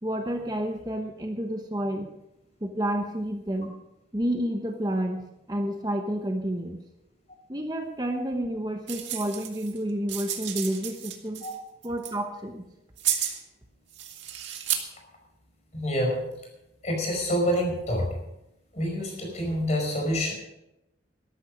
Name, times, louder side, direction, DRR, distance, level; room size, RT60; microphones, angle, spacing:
voice 1, 0.0-2.1 2.6-3.7 4.1-6.8 7.5-11.5 11.8-12.6, right 1 dB, 20° right, 4 dB, 1.0 m, -30 dB
sound 1, 8.9-9.8 10.1-11.5 11.8-12.1 13.0-13.4 13.9-14.8, right 10 dB, 85° right, 2.0 m, -32 dB
voice 2, 15.7-16.3 16.8-18.1 18.7-20.3, equal, 35° left, 1 dB, 5.2 m, -27 dB
13.5 x 13.0 x 5.2 m, 0.89 s
head